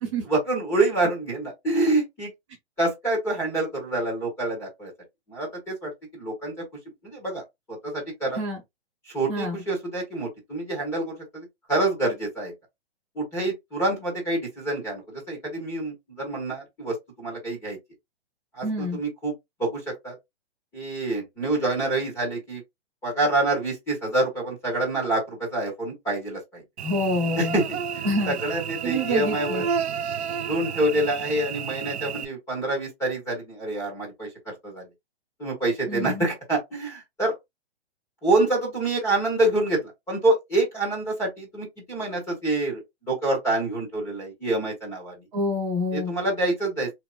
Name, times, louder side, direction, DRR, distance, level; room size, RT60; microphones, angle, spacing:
voice 1, 0.3-2.3 2.8-4.9 5.3-6.6 7.0-8.4 9.1-12.5 13.1-17.8 18.5-19.3 19.6-20.1 20.7-22.6 23.0-26.6 27.4-27.6 27.9-29.6 30.5-34.8 35.4-37.3 38.2-45.1 45.9-46.9, right 2 dB, 10° left, 1.3 m, -27 dB
voice 2, 18.6-19.0 26.8-27.5 28.0-28.3 28.8-29.7 35.9-36.3 45.3-46.1, equal, 25° right, 1.3 m, -27 dB
Cricket / Buzz, 26.8-32.3, right 7 dB, 75° right, 0.7 m, -31 dB
4.6 x 3.0 x 2.5 m
hypercardioid pair, 175°, 33 cm